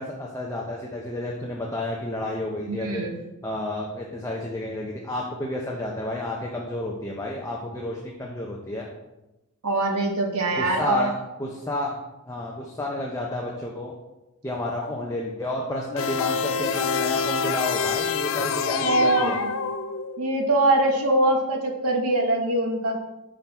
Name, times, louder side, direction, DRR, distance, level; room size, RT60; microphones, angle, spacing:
voice 1, 0.0-3.1 3.4-8.9 10.6-12.0 12.3-13.9 14.4-19.4, left 1 dB, 15° left, -2 dB, 0.5 m, -31 dB
voice 2, 2.6-3.2 9.6-11.1 18.8-19.6 20.2-23.0, right 2 dB, 85° right, 3 dB, 0.9 m, -23 dB
sound 1, 16.0-20.3, left 6 dB, 65° left, 0.4 m, -26 dB
5.6 x 3.8 x 4.4 m, 0.99 s
head